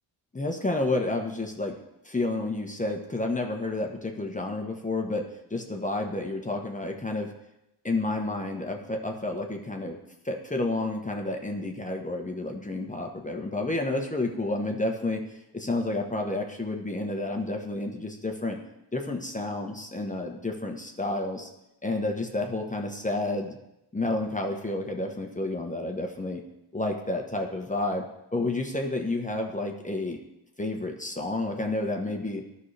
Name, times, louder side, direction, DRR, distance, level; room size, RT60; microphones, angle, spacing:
voice 1, 0.3-1.8 2.0-7.3 7.8-10.0 10.2-15.2 15.5-18.6 18.9-21.5 21.8-23.6 23.9-26.4 26.7-28.1 28.3-30.2 30.6-32.5, left 2 dB, 15° left, 2 dB, 1.2 m, -30 dB
12.0 x 5.5 x 3.4 m, 0.89 s
supercardioid pair, 60°, 47 cm